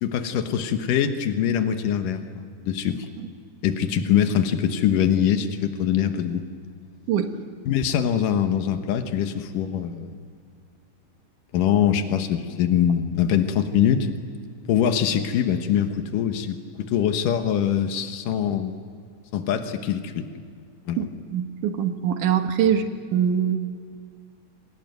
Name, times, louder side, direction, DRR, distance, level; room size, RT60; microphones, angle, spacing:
voice 1, 0.0-3.1 3.6-6.4 7.7-10.2 11.5-14.1 14.7-18.8 19.3-20.3 20.9-21.1, left 9 dB, 90° left, 7 dB, 2.9 m, -23 dB
voice 2, 21.3-22.8 23.1-23.6, right 8 dB, 75° right, 7 dB, 2.9 m, -22 dB
27.5 x 20.0 x 9.2 m, 2.1 s
omnidirectional pair, 3.7 m